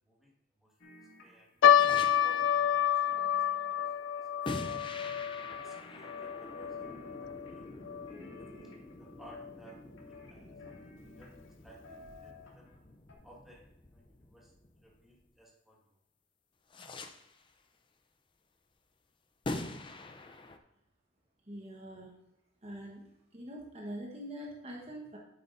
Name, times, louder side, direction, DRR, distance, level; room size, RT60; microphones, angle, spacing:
voice 1, 0.1-1.5 2.2-3.2 3.8-3.9 4.1-4.3 4.6-5.1 5.6-7.6 8.3-8.7 9.0-9.8 10.1-11.3 11.6-12.7 13.2-14.5 14.8-16.0, equal, ahead, -4 dB, 1.7 m, -58 dB
sound 1, 0.8-1.6 1.8-4.0 4.7-5.3 5.6-6.5 6.8-7.7 8.1-9.1 9.7-11.5 11.8-12.8 13.1-13.2, left 2 dB, 65° left, 1.9 m, -55 dB
sound 2, 1.6-8.1 8.4-8.5 9.2-9.5 10.1-10.2 10.6-10.7, left 9 dB, 85° left, 0.4 m, -29 dB
sound 3, 1.7-2.6 4.4-15.4 16.7-17.5 19.4-20.6, left 2 dB, 25° left, 0.5 m, -45 dB
voice 2, 21.5-22.2 22.6-23.0 23.3-25.2, equal, 35° right, -2 dB, 1.1 m, -44 dB
10.0 x 8.1 x 2.6 m, 0.83 s
head